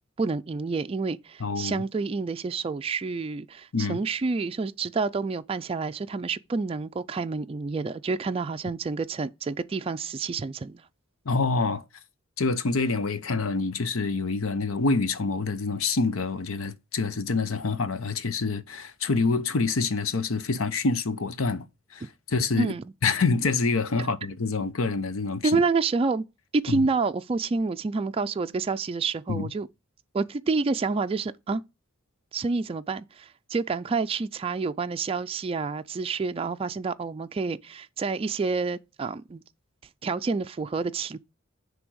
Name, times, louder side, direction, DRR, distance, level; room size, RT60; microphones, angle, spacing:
voice 1, 0.2-10.8 22.6-22.8 24.0-24.1 25.4-26.2 26.5-29.7 30.1-31.6 32.3-39.4 40.0-41.2, right 4 dB, 30° right, 0.3 m, -28 dB
voice 2, 1.4-1.8 3.7-4.0 11.2-11.8 12.4-21.6 21.9-22.7 23.0-25.6 26.7-26.8 29.3-29.5, left 4 dB, 85° left, 0.8 m, -26 dB
9.8 x 3.4 x 6.2 m
head